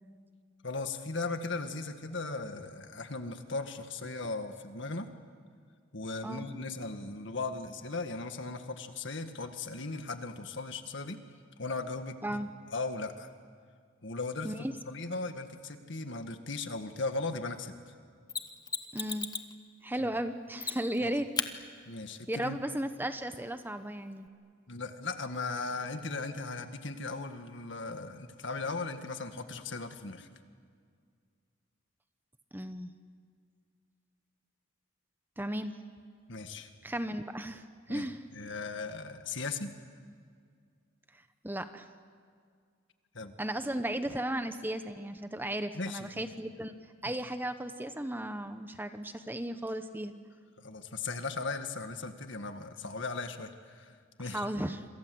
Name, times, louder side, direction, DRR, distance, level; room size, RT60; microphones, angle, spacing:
voice 1, 0.6-5.1 5.9-11.2 11.6-12.4 12.7-13.3 14.0-17.7 20.0-20.1 21.0-21.2 21.9-22.6 24.7-30.3 36.3-36.7 37.9-38.1 38.3-39.7 43.1-43.3 45.7-46.3 47.1-47.2 50.6-54.5, left 3 dB, 60° left, 7 dB, 1.9 m, -37 dB
Mechanisms, 18.3-19.5 20.6-21.0 21.4-21.5 24.3-24.4, left 5 dB, 20° left, 1.1 m, -35 dB
voice 2, 18.9-19.3 19.8-21.3 22.3-24.3 32.5-32.9 35.4-35.7 36.8-38.2 41.1-41.9 43.4-46.8 47.0-50.1 54.2-54.9, right 1 dB, 10° right, 9 dB, 1.0 m, -35 dB
27.0 x 26.5 x 7.9 m, 2.1 s
head